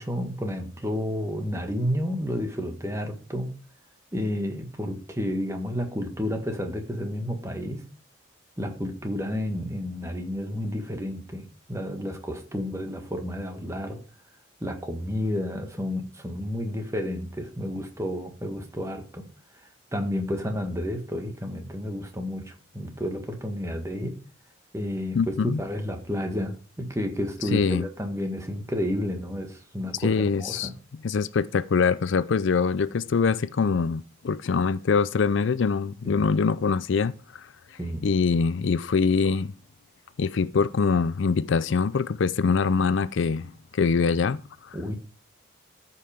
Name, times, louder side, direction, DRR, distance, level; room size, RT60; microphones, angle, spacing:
voice 1, 0.0-3.5 4.1-7.8 8.6-14.0 14.6-19.2 19.9-24.2 24.7-30.7 36.0-36.3 37.8-38.1 44.7-45.0, equal, 15° right, 1.5 m, -31 dB
voice 2, 25.1-25.6 27.5-27.8 30.0-30.7 31.0-37.5 38.0-39.5 40.2-44.8, left 5 dB, 65° left, 0.4 m, -24 dB
13.5 x 5.7 x 5.0 m
head